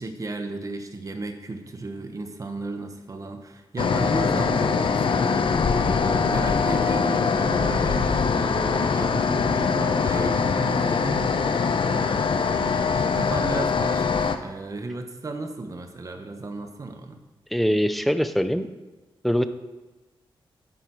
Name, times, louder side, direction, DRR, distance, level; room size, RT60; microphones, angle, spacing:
voice 1, 0.0-5.5 5.8-17.2, right 3 dB, 35° right, 6 dB, 1.2 m, -34 dB
sound 1, 3.8-14.4, left 5 dB, 65° left, 0.8 m, -23 dB
voice 2, 17.5-18.7 19.2-19.5, equal, ahead, 10 dB, 0.6 m, -22 dB
11.0 x 9.4 x 4.7 m, 1.1 s
wide cardioid pair, 120°, 9 cm